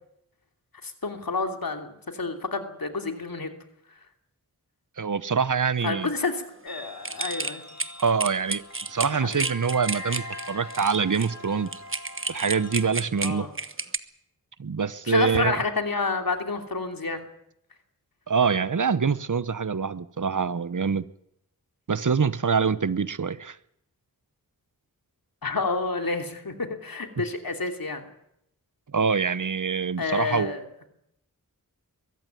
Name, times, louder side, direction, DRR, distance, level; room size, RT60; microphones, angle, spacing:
voice 1, 0.8-3.5 5.8-7.6 9.1-9.5 13.2-13.5 15.1-17.3 25.4-28.1 30.0-30.6, left 3 dB, 75° left, 5 dB, 3.0 m, -29 dB
voice 2, 5.0-6.1 8.0-8.6 8.9-11.7 12.3-13.5 14.6-15.6 18.3-21.1 21.9-23.6 28.9-30.5, right 5 dB, 60° right, 16 dB, 1.0 m, -25 dB
sound 1, 6.7-12.9, left 1 dB, 50° left, 2.4 m, -41 dB
sound 2, 7.0-14.0, right 3 dB, 35° right, 1.3 m, -31 dB
22.5 x 15.0 x 9.3 m, 0.77 s
wide cardioid pair, 50°, 35 cm